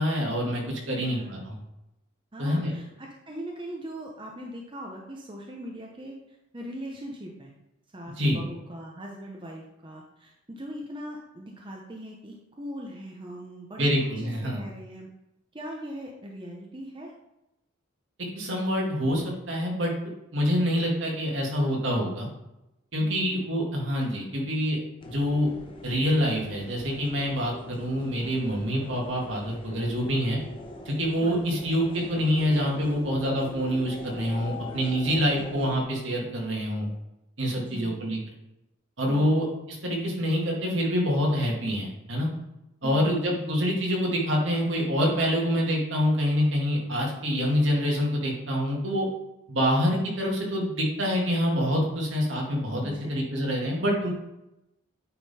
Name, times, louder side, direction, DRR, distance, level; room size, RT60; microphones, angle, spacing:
voice 1, 0.0-1.6 2.4-2.7 8.2-8.4 13.8-14.6 18.3-19.9 20.3-22.3 22.9-24.8 25.0-25.5 25.8-30.4 30.9-36.9 37.4-38.2 39.0-42.3 42.8-49.1 49.5-52.8 53.1-54.1, equal, 65° right, -1 dB, 2.0 m, -26 dB
voice 2, 1.0-1.5 2.3-7.5 7.9-13.9 14.2-15.1 15.5-17.1 23.0-23.3 24.4-24.5 31.2-31.4 35.2-35.5 37.5-38.0 39.1-39.4 42.8-43.4 52.8-53.2, equal, 25° right, -1 dB, 0.7 m, -40 dB
sound 1, 25.0-35.8, left 1 dB, 25° left, 0.7 m, -42 dB
9.3 x 3.7 x 4.3 m, 0.91 s
head